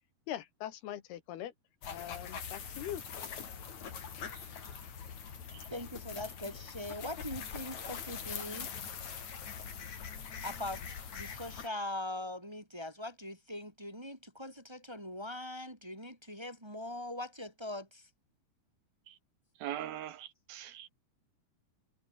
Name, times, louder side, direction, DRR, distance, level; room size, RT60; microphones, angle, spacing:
voice 1, 0.3-1.5 1.9-3.0, left 12 dB, 75° left, 3.4 m, -41 dB
sound 1, 1.8-11.7, left 7 dB, 45° left, 4.0 m, -43 dB
voice 2, 5.7-8.7 10.4-18.0, left 1 dB, 10° right, 1.7 m, -41 dB
voice 3, 19.6-20.9, right 12 dB, 70° right, 2.9 m, -41 dB
omnidirectional pair, 4.8 m